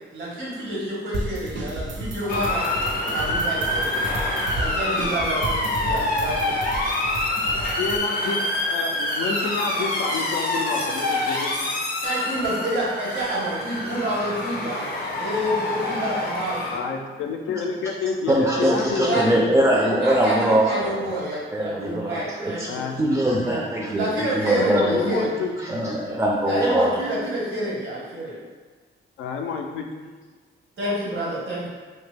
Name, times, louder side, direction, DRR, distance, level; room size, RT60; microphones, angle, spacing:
voice 1, 0.1-2.7 3.1-4.0 4.6-5.6 5.8-6.5 12.0-16.6 18.6-19.2 19.7-23.6 23.9-25.5 26.4-28.3 30.8-31.7, right 1 dB, 90° right, -6 dB, 1.0 m, -28 dB
sound 1, 1.1-8.0, right 2 dB, 70° right, 0.6 m, -32 dB
Motor vehicle (road) / Siren, 2.3-16.8, left 1 dB, 50° left, 0.6 m, -26 dB
voice 2, 7.8-8.4 8.7-11.5 16.7-19.7 22.6-23.0 24.4-25.5 29.2-29.9, left 5 dB, 85° left, 3 dB, 0.4 m, -28 dB
voice 3, 18.3-21.1 21.5-22.7 23.0-25.0 25.6-26.9, right 1 dB, 10° right, -2 dB, 0.3 m, -22 dB
2.9 x 2.2 x 3.3 m, 1.4 s
cardioid pair, 90°, 20 cm